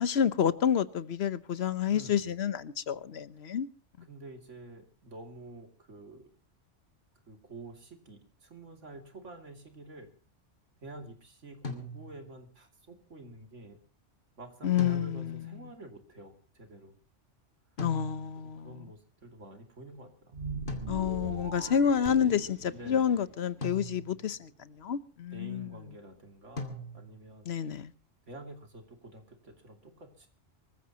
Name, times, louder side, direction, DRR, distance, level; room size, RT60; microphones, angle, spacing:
voice 1, 0.0-3.7 14.6-15.6 17.8-18.9 20.9-25.8 27.5-27.9, left 8 dB, 60° left, 1.1 m, -29 dB
voice 2, 1.9-2.4 4.1-6.3 7.3-10.1 10.8-13.8 14.4-17.0 18.4-20.3 22.7-23.2 25.3-27.5 28.3-30.3, right 2 dB, 85° right, 3.0 m, -48 dB
sound 1, 11.6-12.4 14.8-15.5 17.8-18.6 20.7-21.4 23.6-24.4 26.6-27.3, left 1 dB, 45° left, 2.3 m, -41 dB
sound 2, 20.3-22.9, right 3 dB, 45° right, 1.9 m, -40 dB
Fireworks, 22.1-25.9, right 2 dB, 65° right, 3.9 m, -50 dB
24.5 x 15.0 x 2.9 m
omnidirectional pair, 1.2 m